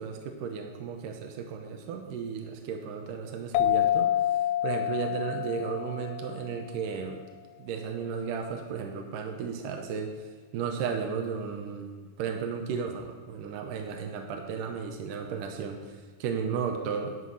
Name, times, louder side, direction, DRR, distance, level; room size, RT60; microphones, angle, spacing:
voice 1, 0.0-4.4 4.6-7.2 7.6-11.9 12.2-17.2, right 6 dB, 75° right, 4 dB, 2.2 m, -34 dB
sound 1, 3.5-6.8, left 12 dB, 80° left, 2.3 m, -28 dB
11.0 x 5.8 x 6.3 m, 1.5 s
omnidirectional pair, 4.3 m